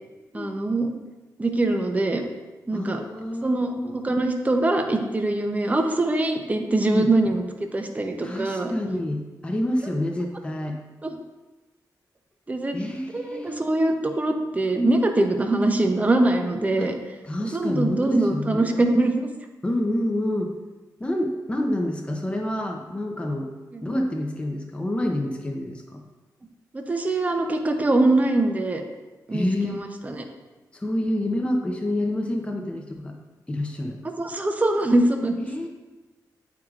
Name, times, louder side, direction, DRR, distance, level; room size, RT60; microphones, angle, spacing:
voice 1, 0.3-0.9 1.4-2.2 2.7-3.0 3.4-8.7 11.0-11.1 12.5-12.8 13.1-17.0 17.5-19.3 23.7-23.9 26.7-28.8 29.3-29.5 30.0-30.2 34.2-35.5, right 2 dB, 20° right, 4 dB, 0.6 m, -23 dB
voice 2, 2.7-4.0 6.9-7.1 8.2-10.8 12.7-13.6 16.8-16.9 17.2-18.8 19.6-20.6 21.0-23.5 23.8-26.0 29.3-29.8 30.7-33.1 33.5-34.0 35.5-35.7, left 1 dB, 15° left, 2 dB, 0.6 m, -28 dB
8.6 x 4.6 x 2.4 m, 1.2 s
cardioid pair, 90°, 7 cm